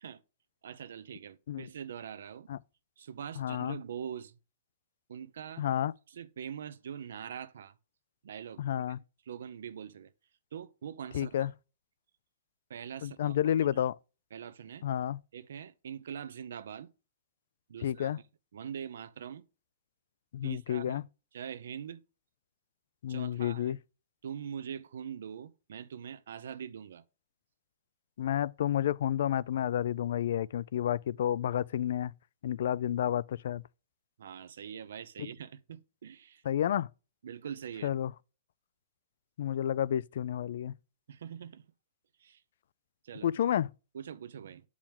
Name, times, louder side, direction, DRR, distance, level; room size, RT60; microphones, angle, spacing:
voice 1, 0.6-2.5 3.0-4.4 5.1-5.6 6.1-7.7 8.2-8.6 9.3-10.1 10.5-11.5 12.7-13.4 13.6-13.8 14.3-14.9 15.3-16.9 17.7-18.1 18.5-19.4 20.4-21.0 21.3-22.0 23.1-23.8 24.2-27.0 34.2-36.4 37.2-37.9 41.1-41.6 42.2-42.4 43.0-43.3 43.9-44.6, right 8 dB, 80° right, 0.7 m, -43 dB
voice 2, 3.4-3.8 5.6-5.9 8.6-9.0 11.1-11.5 13.0-14.0 14.8-15.2 17.8-18.2 20.3-21.0 23.0-23.8 28.2-32.1 32.4-33.6 36.5-36.9 37.8-38.1 39.4-40.7 43.2-43.7, left 10 dB, 65° left, 0.3 m, -30 dB
7.2 x 4.8 x 3.6 m
hypercardioid pair, 155°, 0 cm